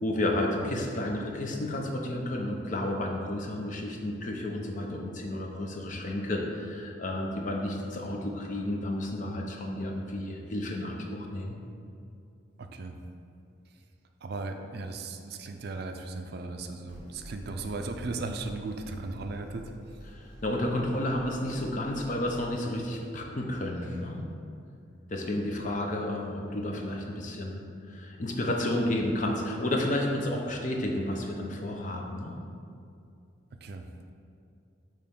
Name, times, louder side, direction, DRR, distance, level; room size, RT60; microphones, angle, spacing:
voice 1, 0.0-11.6 20.0-24.2 25.1-27.6 27.9-32.4, left 1 dB, 40° left, 1 dB, 0.6 m, -31 dB
voice 2, 12.6-13.0 14.2-19.7 33.6-33.9, right 3 dB, 55° right, 5 dB, 0.4 m, -36 dB
sound 1, 16.9-22.5, equal, 65° left, 1.4 m, -48 dB
6.6 x 3.1 x 5.2 m, 2.5 s
head